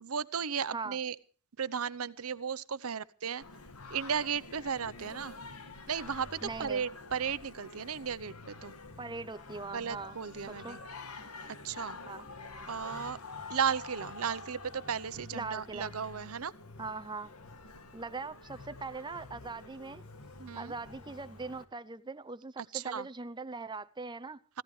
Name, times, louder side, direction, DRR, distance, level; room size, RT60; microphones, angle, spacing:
voice 1, 0.0-1.2 1.6-3.4 3.9-5.4 5.9-8.7 9.7-10.8 11.6-12.0 12.7-13.2 13.5-16.5 20.4-20.7 22.6-23.1, right 7 dB, 70° right, 0.8 m, -35 dB
Singing, 3.4-21.6, left 3 dB, 80° left, 1.9 m, -48 dB
voice 2, 6.4-6.8 9.0-10.2 10.5-10.8 12.1-12.3 15.3-15.9 16.8-17.3 17.9-20.0 20.6-24.4, right 4 dB, 20° right, 0.6 m, -41 dB
25.0 x 15.5 x 3.2 m
head